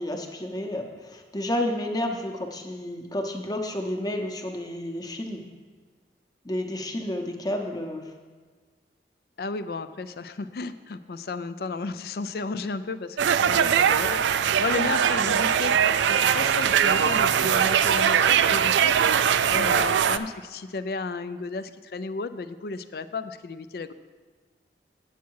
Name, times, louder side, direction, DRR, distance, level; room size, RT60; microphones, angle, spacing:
voice 1, 0.0-5.5 6.4-8.1 19.5-19.7, left 1 dB, 20° left, 3 dB, 0.8 m, -31 dB
voice 2, 9.4-15.8 16.0-23.9, left 3 dB, 55° left, 12 dB, 0.4 m, -33 dB
sound 1, 13.2-20.2, right 8 dB, 80° right, 0.3 m, -21 dB
8.3 x 8.2 x 4.7 m, 1.5 s
head